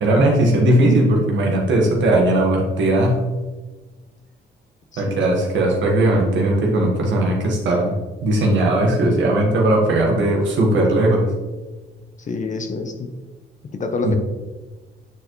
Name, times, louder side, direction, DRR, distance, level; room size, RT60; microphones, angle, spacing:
voice 1, 0.0-3.2 5.0-11.3 14.0-14.2, right 1 dB, 70° right, -1 dB, 1.4 m, -18 dB
voice 2, 4.9-5.3 12.2-13.1 13.7-14.1, left 4 dB, 40° left, 6 dB, 0.7 m, -27 dB
8.8 x 4.5 x 3.1 m, 1.3 s
cardioid pair, 90°, 20 cm